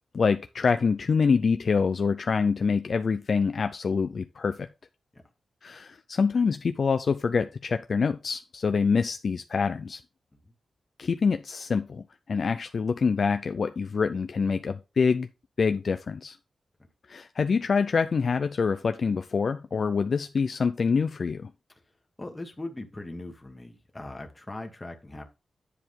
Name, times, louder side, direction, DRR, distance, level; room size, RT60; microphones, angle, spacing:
voice 1, 0.1-4.7 5.6-10.0 11.0-15.3 15.6-16.4 17.1-21.5, left 5 dB, 55° left, 0.4 m, -26 dB
voice 2, 22.2-25.2, left 2 dB, 15° left, 1.4 m, -40 dB
10.0 x 4.7 x 3.6 m
wide cardioid pair, 130°, 0 cm